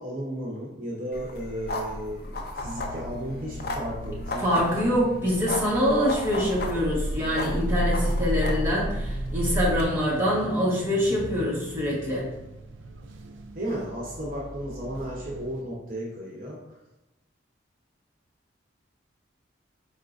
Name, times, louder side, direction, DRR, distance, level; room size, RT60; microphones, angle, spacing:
voice 1, 0.0-4.7 13.5-16.6, equal, 45° right, -4 dB, 0.9 m, -34 dB
sound 1, 1.1-9.8, equal, 50° left, 0.6 m, -31 dB
sound 2, 2.6-15.6, right 1 dB, 80° right, 0.4 m, -41 dB
voice 2, 4.4-12.3, equal, 15° right, -7 dB, 1.2 m, -25 dB
4.8 x 3.7 x 2.5 m, 0.96 s
head